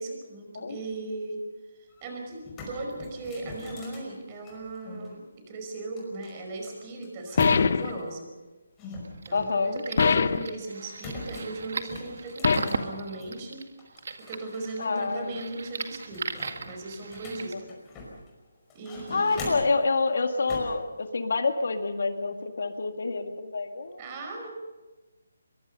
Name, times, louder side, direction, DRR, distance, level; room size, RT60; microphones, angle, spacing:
voice 1, 0.0-1.4 1.8-8.3 9.3-13.6 14.3-17.7 18.7-19.6 24.0-24.5, right 2 dB, 25° right, 3 dB, 5.2 m, -37 dB
sound 1, 1.9-2.0 2.3-5.1 6.0-8.0 8.8-10.4 11.0-13.4 13.8-14.9 15.2-15.3 15.7-18.3 18.7-19.8 20.5-20.8, left 2 dB, 15° left, 5.3 m, -40 dB
sound 2, 7.4-8.0 10.0-10.5 12.4-12.9, left 5 dB, 50° left, 0.8 m, -23 dB
sound 3, 9.0-17.5, right 4 dB, 60° right, 1.9 m, -37 dB
voice 2, 9.3-9.8 14.8-15.4 19.1-24.0, left 3 dB, 65° left, 6 dB, 2.0 m, -27 dB
24.0 x 23.0 x 5.5 m, 1.2 s
hypercardioid pair, 170°, 0 cm